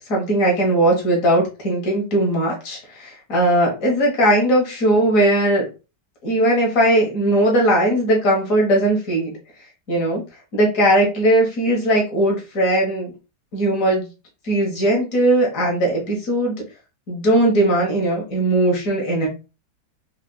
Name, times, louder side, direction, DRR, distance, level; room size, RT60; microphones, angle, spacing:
voice 1, 0.1-5.7 6.2-9.3 9.9-10.2 10.5-13.1 13.5-14.1 14.4-16.6 17.1-19.3, right 1 dB, 50° left, -1 dB, 1.6 m, -18 dB
4.8 x 2.9 x 2.2 m, 0.31 s
omnidirectional pair, 1.9 m